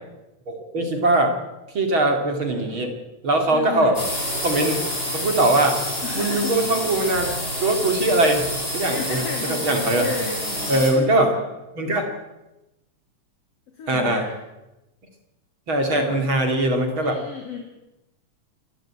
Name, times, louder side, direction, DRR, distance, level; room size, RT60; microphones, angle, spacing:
voice 1, 0.5-1.4 1.7-2.9 3.2-4.0 4.4-4.8 5.1-5.8 6.1-7.3 7.6-10.0 10.7-11.3 11.8-12.1 13.9-14.2 15.7-17.2, right 2 dB, 40° right, 4 dB, 3.0 m, -21 dB
voice 2, 3.5-4.0 6.0-6.7 8.9-11.4 13.7-14.4 15.8-16.2 17.0-17.6, left 5 dB, 50° left, 2 dB, 3.4 m, -33 dB
sound 1, 3.9-10.9, equal, 15° left, 6.6 m, -28 dB
27.5 x 12.5 x 8.7 m, 1.0 s
omnidirectional pair, 3.6 m